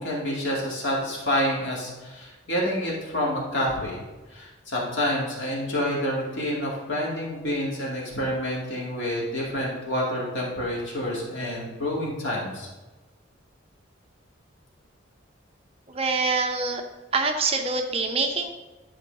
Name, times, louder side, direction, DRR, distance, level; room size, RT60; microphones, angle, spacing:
voice 1, 0.0-4.0 4.3-12.7, equal, 70° left, -4 dB, 2.3 m, -28 dB
voice 2, 15.9-16.8 17.1-18.5, right 4 dB, 30° right, 4 dB, 0.7 m, -25 dB
11.0 x 4.7 x 5.3 m, 1.2 s
head